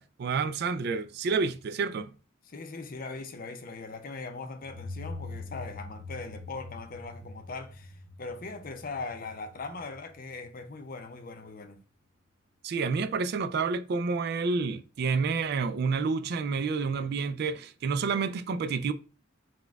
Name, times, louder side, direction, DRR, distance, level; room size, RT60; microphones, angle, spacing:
voice 1, 0.0-2.1 12.6-18.9, right 4 dB, 50° right, 0.3 m, -29 dB
voice 2, 2.5-11.8, left 3 dB, 45° left, 0.5 m, -40 dB
sound 1, 4.6-11.2, left 2 dB, 70° right, 1.5 m, -44 dB
4.2 x 2.2 x 4.5 m
head